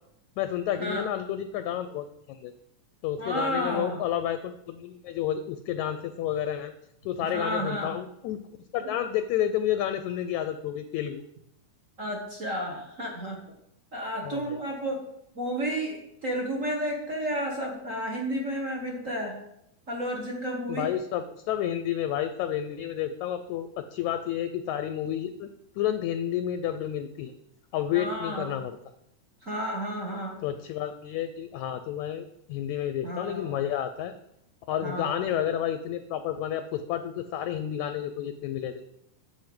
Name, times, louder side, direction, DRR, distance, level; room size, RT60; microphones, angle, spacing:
voice 1, 0.4-2.5 3.0-6.7 7.0-8.4 8.7-11.2 14.2-14.6 20.7-25.5 25.8-27.3 27.7-28.8 30.4-34.1 34.7-38.8, left 10 dB, 80° left, 10 dB, 1.7 m, -30 dB
voice 2, 3.2-4.0 7.2-8.0 8.8-8.9 12.0-13.4 13.9-15.0 15.3-19.4 19.9-20.9 27.9-28.6 29.4-30.4 33.0-33.6 34.8-35.3, equal, 40° right, -2 dB, 1.1 m, -32 dB
10.5 x 4.5 x 7.8 m, 0.80 s
omnidirectional pair, 3.7 m